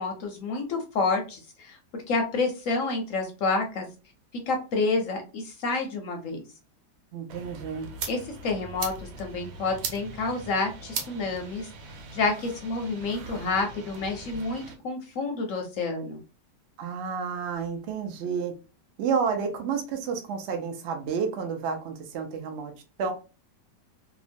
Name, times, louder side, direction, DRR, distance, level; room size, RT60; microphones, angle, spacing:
voice 1, 0.0-1.8 2.1-3.9 4.5-6.4 8.1-11.7 12.1-16.2, left 3 dB, 65° left, 0.8 m, -29 dB
voice 2, 7.1-7.9 16.8-18.6 19.0-22.7 23.0-23.1, right 6 dB, 65° right, 0.7 m, -30 dB
sound 1, 7.3-14.8, right 4 dB, 90° right, 1.3 m, -39 dB
2.9 x 2.2 x 2.5 m
omnidirectional pair, 1.8 m